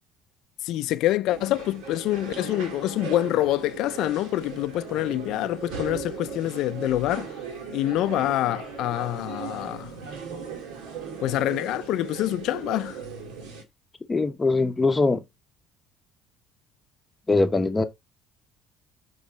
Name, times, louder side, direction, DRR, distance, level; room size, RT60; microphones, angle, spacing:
voice 1, 0.6-7.3 7.7-9.9 11.2-13.0, left 14 dB, 70° left, 0.4 m, -26 dB
sound 1, 1.3-13.6, right 6 dB, 75° right, 1.7 m, -38 dB
voice 2, 14.1-15.2 17.3-17.8, left 3 dB, 20° left, 0.8 m, -22 dB
8.0 x 3.1 x 3.8 m
hypercardioid pair, 70°, 0 cm